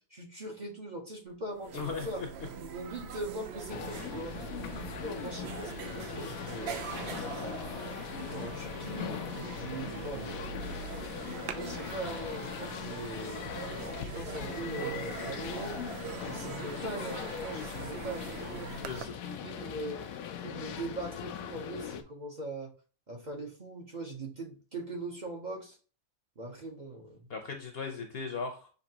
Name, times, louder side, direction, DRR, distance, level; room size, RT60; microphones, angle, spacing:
voice 1, 0.1-2.2 2.6-4.4 4.7-6.8 8.2-9.2 9.6-10.8 11.5-13.5 14.0-15.8 16.2-18.3 18.9-19.1 19.4-20.1 20.4-22.7 23.1-25.8 26.4-27.3, right 2 dB, 35° right, -1 dB, 0.9 m, -41 dB
sound 1, 1.3-1.4 1.6-19.0, right 7 dB, 60° right, 0.7 m, -42 dB
voice 2, 1.7-2.3 18.8-19.7 20.4-20.5 27.3-28.7, left 5 dB, 50° left, 4 dB, 0.9 m, -38 dB
sound 2, 3.7-22.0, left 9 dB, 85° left, 1.0 m, -40 dB
6.5 x 2.9 x 2.8 m, 0.37 s
omnidirectional pair, 1.4 m